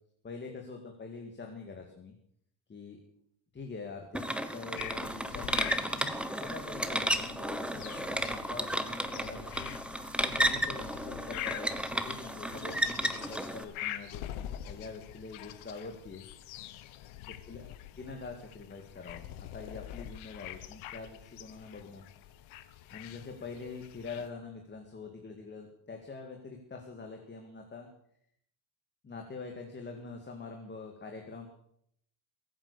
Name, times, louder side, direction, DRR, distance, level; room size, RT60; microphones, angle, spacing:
voice 1, 0.2-2.2 2.7-3.0 3.5-9.7 10.2-16.2 17.5-22.1 22.9-27.9 29.0-31.5, left 4 dB, 25° left, 3 dB, 2.1 m, -45 dB
sound 1, 4.1-13.6, right 1 dB, ahead, 1.0 m, -33 dB
sound 2, 4.8-24.3, left 12 dB, 90° left, 1.3 m, -45 dB
22.0 x 9.0 x 6.8 m, 0.69 s
cardioid pair, 135°, 47 cm